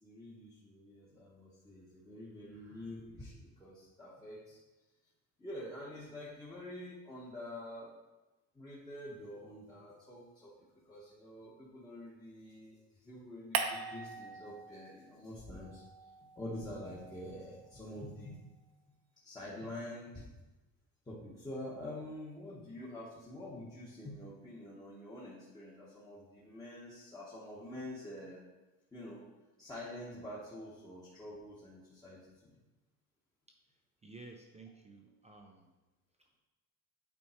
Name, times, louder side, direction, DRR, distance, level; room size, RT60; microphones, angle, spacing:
voice 1, 0.0-4.6 5.4-7.9 8.5-10.5 10.8-15.8 16.4-18.4 19.2-20.2 21.0-28.4 28.9-29.2 29.6-32.5, left 1 dB, 10° left, -8 dB, 1.0 m, -47 dB
sound 1, 13.5-15.2 15.5-18.0, right 6 dB, 65° right, 0.9 m, -41 dB
voice 2, 34.0-35.7 36.2-36.4, right 3 dB, 15° right, 2 dB, 0.4 m, -54 dB
8.5 x 4.5 x 4.3 m, 1.1 s
cardioid pair, 165°, 41 cm